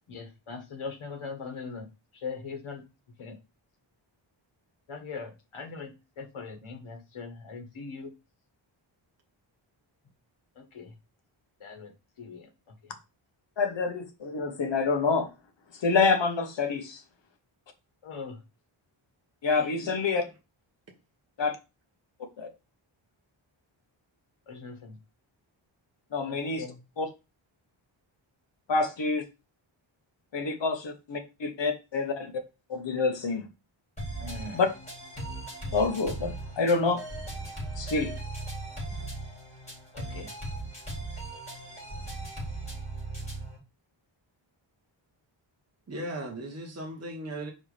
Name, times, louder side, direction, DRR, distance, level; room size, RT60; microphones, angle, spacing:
voice 1, 0.1-1.9 2.2-2.8 3.2-3.3 4.9-5.9 6.2-8.1 10.7-10.9 11.6-11.9 12.2-12.4 18.0-18.3 24.5-24.9 26.3-26.7 34.2-34.6 39.9-40.3, left 4 dB, 85° left, 1.6 m, -40 dB
voice 2, 13.6-15.3 15.8-17.0 19.4-20.2 21.4-21.5 22.4-22.5 26.1-26.6 27.0-27.1 28.7-29.2 30.3-32.3 32.7-33.5 34.5-34.7 35.7-37.0 37.8-38.1, left 4 dB, 60° left, 1.3 m, -27 dB
voice 3, 19.5-20.2 45.9-47.5, right 1 dB, 30° right, 1.3 m, -38 dB
sound 1, 34.0-43.6, right 2 dB, 15° left, 3.7 m, -38 dB
4.9 x 4.4 x 5.0 m
wide cardioid pair, 170°, 48 cm